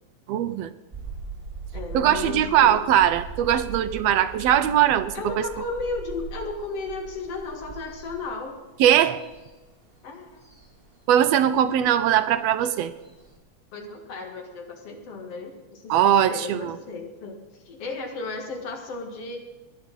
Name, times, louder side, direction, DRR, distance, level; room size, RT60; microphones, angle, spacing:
voice 1, 0.3-0.7 1.9-5.4 8.8-9.2 11.1-12.9 15.9-16.8, right 10 dB, 75° right, 11 dB, 1.6 m, -20 dB
sound 1, 0.9-13.4, right 4 dB, 20° right, 2.2 m, -41 dB
voice 2, 1.7-2.8 5.1-8.6 10.0-10.4 13.7-19.4, left 3 dB, 55° left, 3 dB, 2.8 m, -34 dB
18.5 x 10.5 x 5.3 m, 1.1 s
omnidirectional pair, 3.3 m